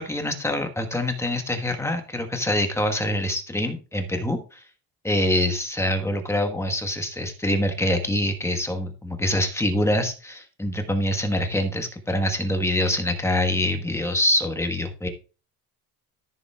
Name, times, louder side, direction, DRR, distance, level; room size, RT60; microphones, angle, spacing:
voice 1, 0.0-4.6 5.0-15.1, left 1 dB, 10° left, 5 dB, 1.3 m, -25 dB
14.0 x 7.1 x 2.3 m, 0.34 s
cardioid pair, 135°, 35 cm